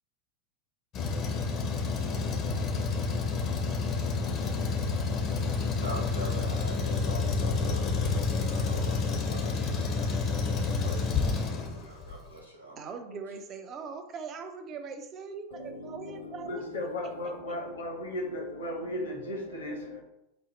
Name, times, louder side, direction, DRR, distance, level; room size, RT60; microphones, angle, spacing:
Truck, 0.9-12.1, left 4 dB, 30° left, 0.6 m, -29 dB
voice 1, 5.7-12.8, equal, 90° right, 1.0 m, -43 dB
voice 2, 12.6-16.6, right 5 dB, 30° right, 0.4 m, -41 dB
voice 3, 15.5-20.0, left 1 dB, 70° left, 0.8 m, -36 dB
5.0 x 2.0 x 3.1 m
figure-of-eight pair, 90°, 0 cm